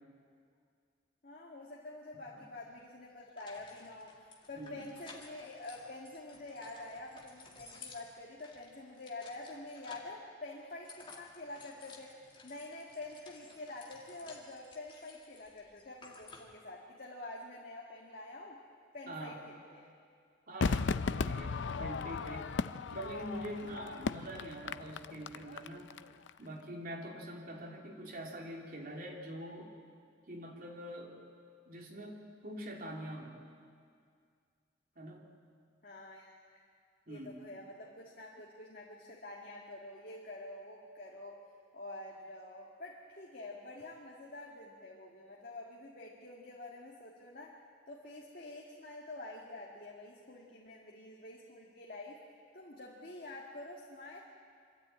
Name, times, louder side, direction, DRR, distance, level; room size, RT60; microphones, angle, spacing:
voice 1, 1.2-12.2 12.4-18.6 18.9-19.9 35.8-36.7 37.1-41.4 41.7-47.6 47.9-52.2 52.5-54.2, left 2 dB, 50° left, -3 dB, 1.9 m, -47 dB
sound 1, 2.7-2.8 3.4-10.2 10.6-16.6, left 3 dB, 25° left, 2.2 m, -55 dB
voice 2, 19.1-19.4 20.5-22.5 22.9-25.9 26.4-29.7 30.3-31.2 31.7-33.4 35.0-35.3 37.1-37.5, right 1 dB, 50° right, -1 dB, 3.0 m, -44 dB
Crowd / Fireworks, 20.6-26.0 26.3-26.4, left 4 dB, 70° left, 0.5 m, -36 dB
25.5 x 13.0 x 8.9 m, 2.2 s
head